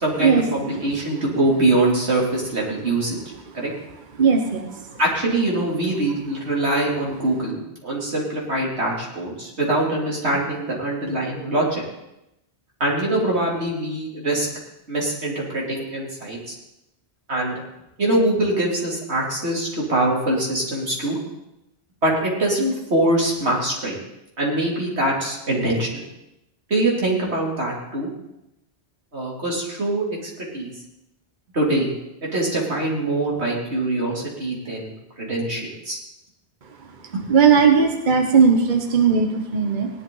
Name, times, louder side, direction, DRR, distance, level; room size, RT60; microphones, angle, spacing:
voice 1, 0.0-3.2 3.5-3.7 5.0-11.8 12.8-14.5 14.9-16.5 17.3-17.6 18.0-21.2 22.0-24.0 24.4-26.0 26.7-28.1 29.1-30.0 30.4-30.7 31.5-31.9 32.2-36.0 37.1-37.2, right 1 dB, 90° right, -3 dB, 3.4 m, -23 dB
voice 2, 4.2-4.7 37.3-39.9, right 6 dB, 50° right, 4 dB, 1.2 m, -17 dB
17.5 x 11.0 x 3.9 m, 0.88 s
omnidirectional pair, 1.1 m